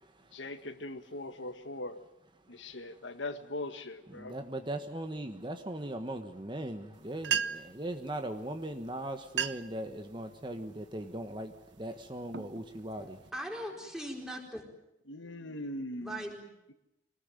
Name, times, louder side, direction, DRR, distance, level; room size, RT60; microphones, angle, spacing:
voice 1, 0.3-2.0 2.5-4.4 15.1-16.2, left 2 dB, 80° left, 8 dB, 1.8 m, -40 dB
voice 2, 4.1-13.2, right 1 dB, 25° right, 7 dB, 1.3 m, -39 dB
sound 1, 6.9-7.0 7.2-7.8 8.7-8.8 9.2-9.8 10.3-10.6 11.2-11.5 12.0-13.3, right 8 dB, 65° right, 0.8 m, -35 dB
voice 3, 13.0-14.7 16.0-16.5, equal, 5° right, 1 dB, 4.4 m, -40 dB
25.5 x 19.0 x 9.2 m, 0.88 s
head